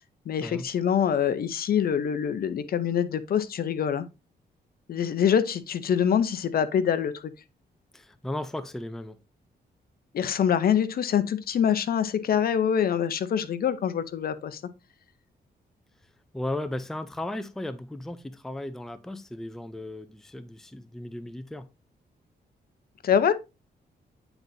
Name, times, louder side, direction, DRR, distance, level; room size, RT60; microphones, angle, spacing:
voice 1, 0.3-4.1 4.9-7.3 10.1-14.6 23.0-23.3, left 8 dB, 60° left, 0.6 m, -25 dB
voice 2, 7.9-9.2 16.3-21.7, left 1 dB, ahead, 0.4 m, -35 dB
8.9 x 3.9 x 2.6 m
cardioid pair, 110°, 17 cm